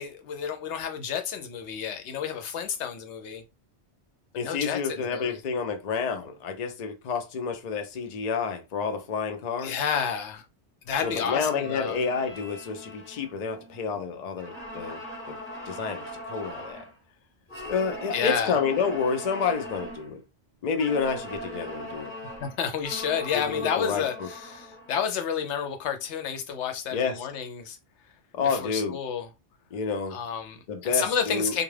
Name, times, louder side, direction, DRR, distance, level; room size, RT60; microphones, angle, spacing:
voice 1, 0.0-3.4 4.3-5.4 9.6-10.4 10.9-12.0 18.1-18.6 22.4-27.8 28.5-29.3 30.1-31.6, left 7 dB, 85° left, 0.9 m, -30 dB
voice 2, 4.4-9.8 11.0-15.0 15.7-16.9 17.7-20.2 20.6-22.1 23.3-24.3 26.9-27.3 28.3-29.0 29.7-30.2 30.7-31.5, left 5 dB, 55° left, 0.5 m, -29 dB
sound 1, 10.9-13.9 14.4-17.0 17.5-20.1 20.8-25.0, left 1 dB, 10° left, 1.0 m, -40 dB
2.3 x 2.2 x 3.1 m
omnidirectional pair, 1.2 m